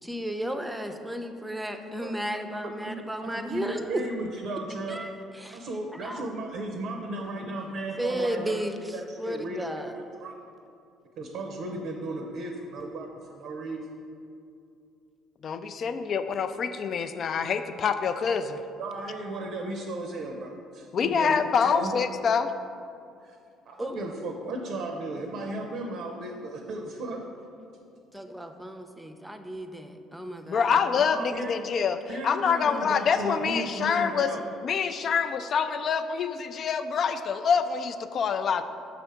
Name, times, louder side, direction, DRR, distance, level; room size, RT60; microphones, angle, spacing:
voice 1, 0.0-4.0 4.9-6.3 8.0-9.9 23.8-24.0 28.1-30.8, equal, 10° right, 7 dB, 0.5 m, -34 dB
voice 2, 3.2-3.6 3.9-5.0 5.5-8.5 8.9-10.3 11.2-13.8 18.8-21.4 21.6-22.0 23.2-23.4 23.7-27.3 31.0-31.7 32.1-34.4, right 2 dB, 65° right, 2 dB, 0.6 m, -35 dB
voice 3, 15.4-18.6 20.9-22.5 30.5-32.0 32.2-34.3 34.6-38.6, left 6 dB, 50° left, 10 dB, 0.3 m, -26 dB
6.1 x 3.4 x 5.7 m, 2.5 s
hypercardioid pair, 55°, 0 cm